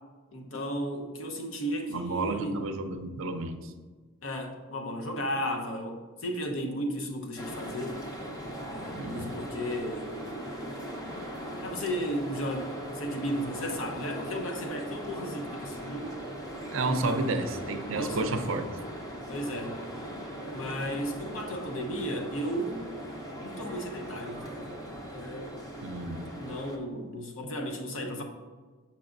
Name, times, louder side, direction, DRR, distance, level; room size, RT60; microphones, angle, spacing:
voice 1, 0.3-2.6 4.2-8.1 8.7-10.1 11.6-16.2 17.0-17.3 17.9-18.4 19.3-19.8 20.5-22.9 23.4-24.8 25.1-25.5 26.3-28.2, equal, 70° left, 2 dB, 0.9 m, -34 dB
voice 2, 1.9-3.7 8.9-9.4 16.7-18.7 25.8-26.4, right 2 dB, 65° right, 7 dB, 0.5 m, -31 dB
sound 1, 7.4-26.8, equal, 15° left, 0.6 m, -39 dB
6.9 x 5.7 x 2.5 m, 1.4 s
head